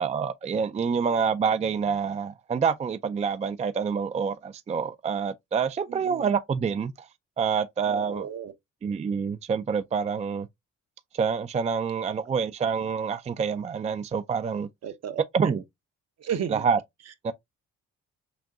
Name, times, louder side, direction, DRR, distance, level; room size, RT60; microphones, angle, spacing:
voice 1, 0.0-7.1 7.4-8.3 8.8-10.5 11.1-14.7 15.3-15.6 16.5-16.8 17.2-17.3, right 6 dB, 25° right, 0.3 m, -27 dB
voice 2, 0.8-1.2 5.9-6.3 7.9-8.5 14.8-15.6 16.2-16.6, right 8 dB, 55° right, 0.8 m, -35 dB
6.1 x 2.2 x 2.5 m
cardioid pair, 90°, 30 cm